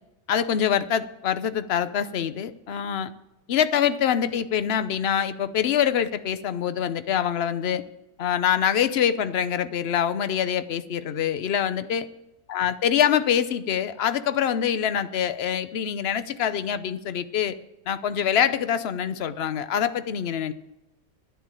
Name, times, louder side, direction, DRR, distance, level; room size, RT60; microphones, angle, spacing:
voice 1, 0.3-3.1 3.5-7.8 8.2-12.0 12.5-17.5 17.9-20.5, left 9 dB, 60° left, 12 dB, 0.7 m, -25 dB
11.0 x 10.0 x 7.4 m, 0.94 s
omnidirectional pair, 1.8 m